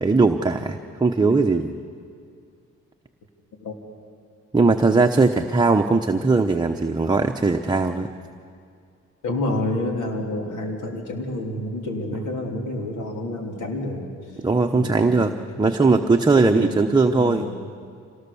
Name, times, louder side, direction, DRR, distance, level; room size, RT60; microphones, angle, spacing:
voice 1, 0.0-1.7 4.5-8.1 14.4-17.5, right 3 dB, 15° right, 3 dB, 0.9 m, -19 dB
voice 2, 9.2-14.4 14.7-15.3 15.6-16.0 16.4-17.6, left 1 dB, 80° left, 2 dB, 3.4 m, -29 dB
26.0 x 18.5 x 7.1 m, 2.4 s
cardioid pair, 90°, 30 cm